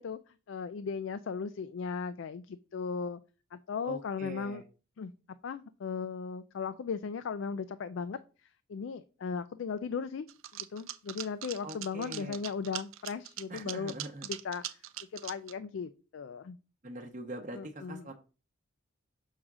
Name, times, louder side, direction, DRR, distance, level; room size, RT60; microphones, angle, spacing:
voice 1, 0.0-3.2 3.5-4.6 5.0-5.1 5.4-10.3 10.5-13.9 14.2-14.8 15.1-16.6 17.5-18.1, left 5 dB, 60° left, 12 dB, 0.3 m, -37 dB
voice 2, 3.9-4.6 11.6-12.4 13.5-14.3 16.8-18.1, right 1 dB, 35° right, 3 dB, 0.8 m, -43 dB
sound 1, 10.3-15.5, right 13 dB, 75° right, 0.5 m, -41 dB
6.4 x 3.7 x 6.0 m, 0.35 s
head